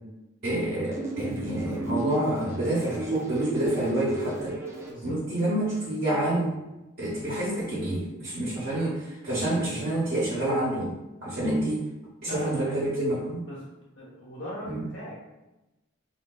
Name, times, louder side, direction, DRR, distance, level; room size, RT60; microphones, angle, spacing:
voice 1, 0.4-4.5 5.0-6.6 7.0-10.9 11.2-11.8 12.2-13.4 14.7-14.8, right 1 dB, 50° right, -8 dB, 0.7 m, -28 dB
sound 1, 0.9-4.9, right 1 dB, 15° right, 0.3 m, -34 dB
voice 2, 4.8-5.2 12.2-12.8 13.4-13.7 14.0-15.2, equal, 65° left, -5 dB, 1.1 m, -39 dB
3.2 x 2.3 x 2.2 m, 1.0 s
head